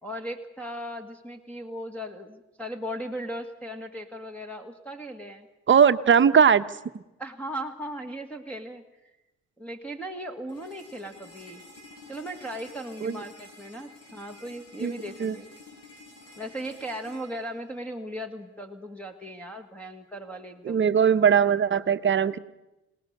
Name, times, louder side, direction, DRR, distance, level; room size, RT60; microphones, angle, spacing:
voice 1, 0.0-5.5 7.2-8.8 9.6-11.6 12.1-15.5 16.4-20.8, equal, 5° left, -1 dB, 1.8 m, -37 dB
voice 2, 5.7-6.6 13.0-13.2 14.8-14.9 15.2-15.4 20.6-22.4, right 7 dB, 40° right, 11 dB, 1.0 m, -20 dB
sound 1, 10.5-18.5, left 2 dB, 50° left, 7.5 m, -50 dB
27.0 x 18.5 x 6.6 m, 0.99 s
cardioid pair, 90°, 30 cm